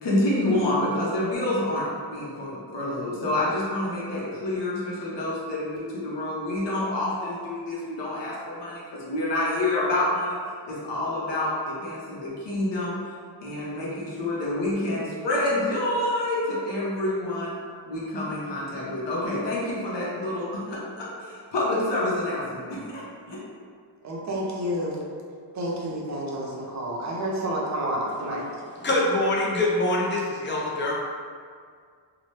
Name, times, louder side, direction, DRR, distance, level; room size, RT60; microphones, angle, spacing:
voice 1, 0.0-10.4 10.6-13.0 13.4-17.5 17.9-23.4, left 1 dB, 65° left, -6 dB, 0.9 m, -28 dB
voice 2, 24.0-25.0 25.5-28.5, right 1 dB, 40° right, -3 dB, 0.5 m, -29 dB
voice 3, 28.8-30.9, left 2 dB, 25° left, -4 dB, 0.4 m, -24 dB
2.8 x 2.1 x 3.1 m, 2.1 s
wide cardioid pair, 160°, 45 cm